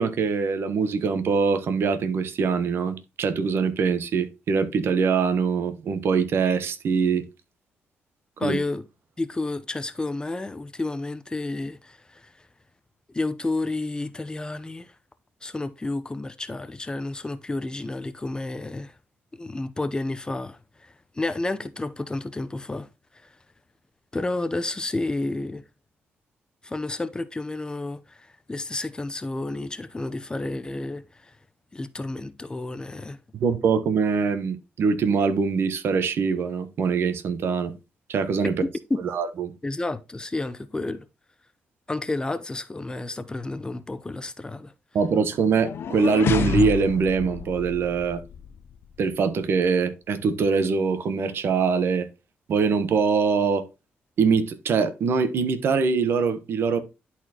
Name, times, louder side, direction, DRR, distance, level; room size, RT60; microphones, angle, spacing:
voice 1, 0.0-7.2 8.4-8.6 33.3-37.7 38.1-38.5 39.1-39.5 44.9-48.2 49.0-52.1 52.5-53.6 54.2-56.8, right 5 dB, 65° right, 1.0 m, -23 dB
voice 2, 8.4-8.8 9.2-12.3 13.1-14.9 15.4-18.9 19.3-22.9 24.1-25.6 26.6-31.3 31.7-33.2 38.9-39.0 39.6-41.1 41.9-44.7, left 2 dB, 20° left, 0.7 m, -31 dB
sound 1, 45.4-48.6, left 7 dB, 65° left, 0.6 m, -29 dB
11.0 x 4.3 x 2.9 m
cardioid pair, 90°, 4 cm